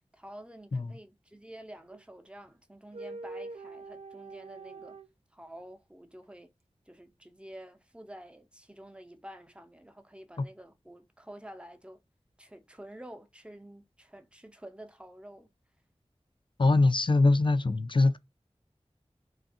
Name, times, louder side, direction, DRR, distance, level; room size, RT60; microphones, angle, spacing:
voice 1, 0.1-5.0 5.3-6.5 6.9-12.0 12.4-15.5, right 1 dB, 10° right, 0.6 m, -49 dB
sound 1, 1.9-2.0 2.9-5.1, right 3 dB, 70° right, 0.4 m, -43 dB
voice 2, 16.6-18.2, left 2 dB, 45° left, 0.4 m, -23 dB
3.4 x 2.4 x 2.7 m
wide cardioid pair, 40°, 11 cm